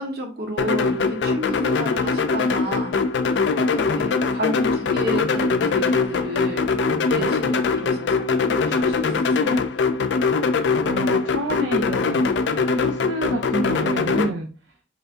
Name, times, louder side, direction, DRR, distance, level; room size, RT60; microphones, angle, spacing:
voice 1, 0.0-3.0 3.5-9.6, right 1 dB, 55° right, 2 dB, 1.0 m, -31 dB
sound 1, 0.6-14.3, left 4 dB, 70° left, 0.4 m, -22 dB
voice 2, 10.8-12.3 12.7-14.5, right 1 dB, 90° right, 1 dB, 0.7 m, -28 dB
4.3 x 2.6 x 3.4 m, 0.35 s
head